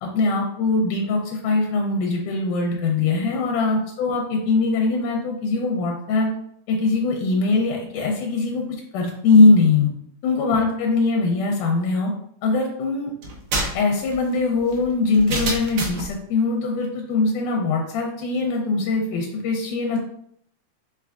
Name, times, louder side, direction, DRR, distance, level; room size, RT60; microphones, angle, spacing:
voice 1, 0.0-6.3 6.7-8.7 8.9-9.9 10.2-12.1 12.4-13.1 13.7-20.0, left 3 dB, 85° left, 0 dB, 2.1 m, -21 dB
sound 1, 13.2-16.1, right 2 dB, 85° right, 1.2 m, -28 dB
4.9 x 3.3 x 2.4 m, 0.69 s
omnidirectional pair, 3.6 m